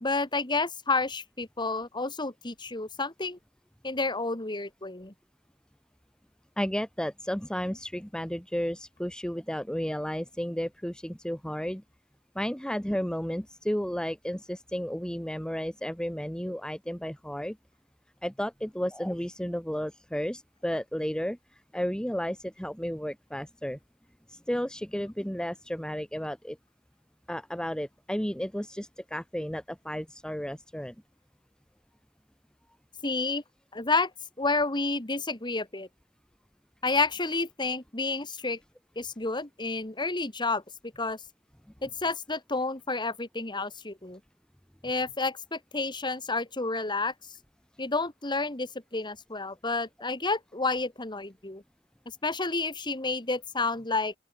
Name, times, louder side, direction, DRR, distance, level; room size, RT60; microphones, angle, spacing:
voice 1, 0.0-3.4 3.8-5.1 33.0-33.4 33.7-34.1 34.4-35.9 36.8-38.6 39.0-40.6 41.0-41.2 41.8-44.2 44.8-47.1 47.8-51.6 52.2-54.1, left 3 dB, 20° left, 2.1 m, -30 dB
voice 2, 6.6-11.8 12.3-17.6 18.2-21.4 21.7-23.8 24.3-26.6 27.3-30.9, equal, 5° left, 1.4 m, -33 dB
open air
head